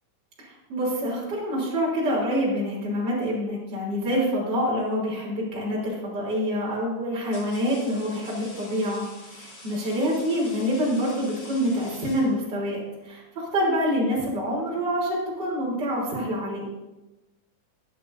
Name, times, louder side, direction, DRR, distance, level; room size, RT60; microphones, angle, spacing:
voice 1, 0.4-16.7, equal, 30° right, -6 dB, 4.0 m, -26 dB
sound 1, 5.7-6.0 6.8-12.8, left 2 dB, 55° left, 5.0 m, -46 dB
22.0 x 8.7 x 2.7 m, 1.1 s
omnidirectional pair, 4.1 m